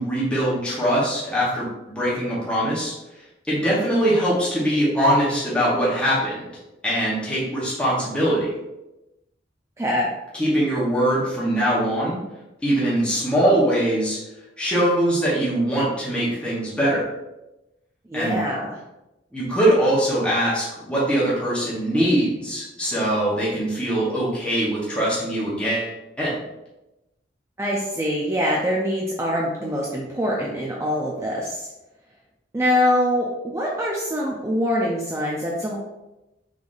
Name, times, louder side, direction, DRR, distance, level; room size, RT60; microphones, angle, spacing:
voice 1, 0.0-1.7 1.9-2.9 3.5-6.4 6.8-8.5 10.3-12.2 12.6-14.2 14.6-17.0 18.1-18.4 19.3-25.9 26.2-26.3, right 1 dB, 5° left, -8 dB, 0.9 m, -22 dB
voice 2, 9.8-10.1 18.1-18.8 27.6-31.7 32.5-35.8, equal, 15° right, -3 dB, 0.4 m, -24 dB
3.8 x 3.4 x 2.5 m, 0.95 s
head